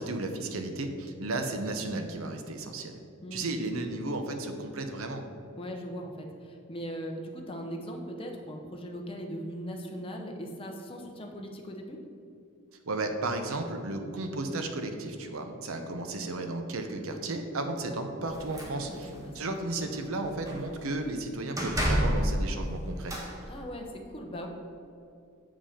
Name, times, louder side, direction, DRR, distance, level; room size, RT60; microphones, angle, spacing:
voice 1, 0.0-3.0 3.3-5.2 12.9-23.1, right 2 dB, 75° right, 6 dB, 0.8 m, -34 dB
voice 2, 3.2-3.6 5.6-12.0 18.6-19.5 23.5-24.5, equal, 25° left, 2 dB, 0.8 m, -39 dB
sound 1, 18.3-19.2 19.6-19.9 20.2-20.8 21.6-23.3, equal, 15° right, 1.3 m, -30 dB
7.3 x 5.4 x 5.0 m, 2.6 s
head